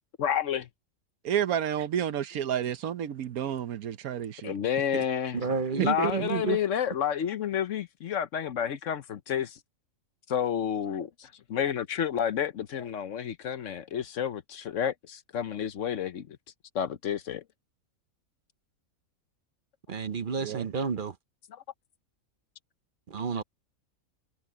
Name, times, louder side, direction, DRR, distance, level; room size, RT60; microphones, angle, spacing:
voice 1, 0.2-0.7 4.4-5.4 5.7-9.6 10.3-16.4 16.7-17.4 21.5-21.6, left 9 dB, 65° left, 1.1 m, -30 dB
voice 2, 1.2-4.5 4.9-5.0 5.8-6.1 20.4-20.7, right 9 dB, 85° right, 1.3 m, -30 dB
voice 3, 5.3-6.6 19.9-21.2 23.1-23.4, right 6 dB, 45° right, 0.8 m, -30 dB
omnidirectional pair, 1.5 m